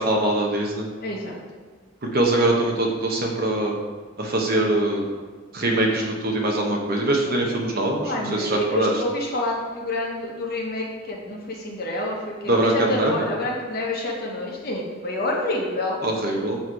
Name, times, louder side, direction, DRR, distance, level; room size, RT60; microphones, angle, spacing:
voice 1, 0.0-0.9 2.0-3.8 4.2-5.1 5.5-8.9 12.5-13.2 16.0-16.6, right 1 dB, 45° right, 0 dB, 0.9 m, -23 dB
voice 2, 1.0-1.4 8.0-16.0, left 2 dB, 45° left, -2 dB, 1.0 m, -28 dB
6.4 x 3.2 x 4.6 m, 1.4 s
head